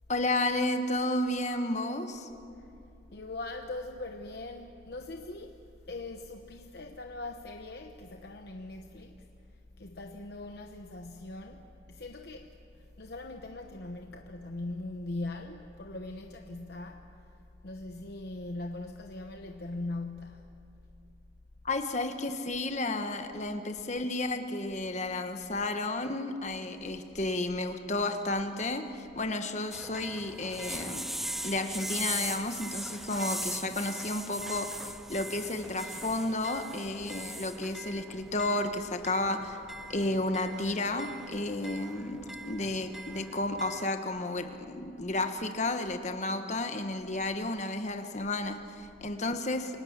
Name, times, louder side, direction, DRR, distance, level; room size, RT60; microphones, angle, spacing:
voice 1, 0.1-2.3 21.6-31.1 31.4-39.6 39.9-42.2 42.4-49.8, left 2 dB, 40° left, 6 dB, 1.3 m, -32 dB
voice 2, 3.1-5.6 5.9-9.2 9.8-17.3 17.6-20.6, left 2 dB, 55° left, 4 dB, 1.0 m, -41 dB
sound 1, 29.7-43.8, right 1 dB, ahead, 0.6 m, -40 dB
29.0 x 19.0 x 7.4 m, 2.7 s
head